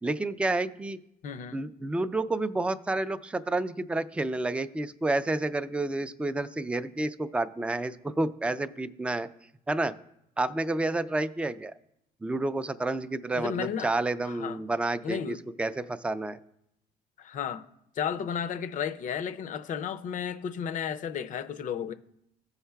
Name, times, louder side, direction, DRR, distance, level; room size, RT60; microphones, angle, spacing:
voice 1, 0.0-1.0 1.5-9.3 9.7-10.0 10.4-11.7 12.2-16.4, right 2 dB, 5° right, 0.3 m, -30 dB
voice 2, 1.2-1.6 13.3-13.9 14.3-14.6 15.0-15.4 17.2-17.7 18.0-21.9, left 8 dB, 50° left, 0.5 m, -33 dB
15.5 x 5.5 x 2.3 m
cardioid pair, 110°, 17 cm